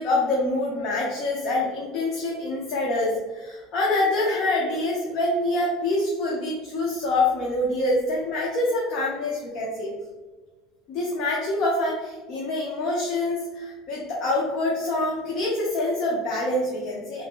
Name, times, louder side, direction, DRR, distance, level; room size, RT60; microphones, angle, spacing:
voice 1, 0.0-9.9 10.9-17.2, left 2 dB, 45° left, -4 dB, 0.7 m, -25 dB
3.3 x 2.9 x 2.9 m, 1.3 s
cardioid pair, 155°, 0 cm